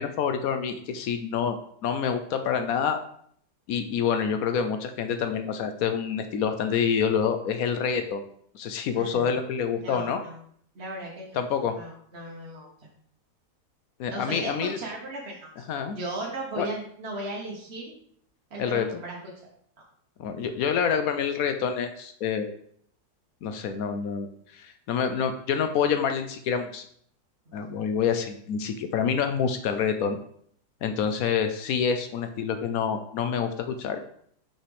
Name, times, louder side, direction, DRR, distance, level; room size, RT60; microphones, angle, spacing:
voice 1, 0.0-3.0 3.7-8.2 8.5-10.2 11.3-11.8 14.0-14.8 15.7-16.0 16.6-16.7 18.6-18.9 20.2-22.5 23.4-26.8 27.5-30.2 30.8-34.0, left 7 dB, 70° left, 8 dB, 0.9 m, -27 dB
voice 2, 8.9-9.4 9.8-10.4 10.7-11.4 11.7-12.7 14.1-15.7 15.9-17.9 18.5-19.2 27.5-27.9, right 2 dB, 45° right, -3 dB, 1.2 m, -37 dB
6.0 x 5.7 x 3.2 m, 0.64 s
omnidirectional pair, 1.8 m